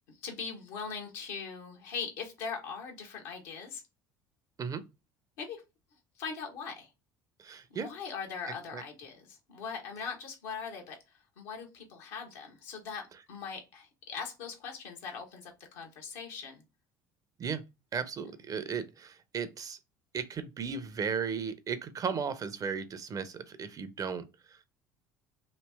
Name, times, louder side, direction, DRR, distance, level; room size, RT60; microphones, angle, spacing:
voice 1, 0.2-3.8 5.4-5.6 6.2-6.9 7.7-13.0 13.3-16.6, left 6 dB, 70° left, 1.1 m, -41 dB
voice 2, 7.4-7.9 8.7-8.8 17.4-17.6 17.9-19.8 20.1-24.7, right 6 dB, 35° right, 0.6 m, -35 dB
3.1 x 2.7 x 3.4 m
hypercardioid pair, 65°, 10 cm